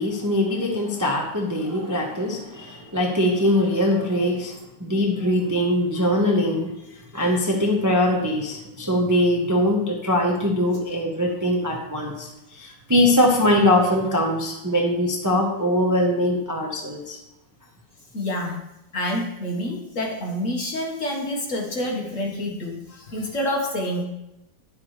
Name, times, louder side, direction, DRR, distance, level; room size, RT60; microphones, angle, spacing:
voice 1, 0.0-4.5 4.8-6.7 7.1-17.2, left 1 dB, 15° right, -1 dB, 0.8 m, -22 dB
voice 2, 18.1-18.6 18.9-24.0, left 1 dB, 45° left, -1 dB, 1.8 m, -27 dB
10.5 x 8.3 x 3.3 m, 0.88 s
omnidirectional pair, 2.1 m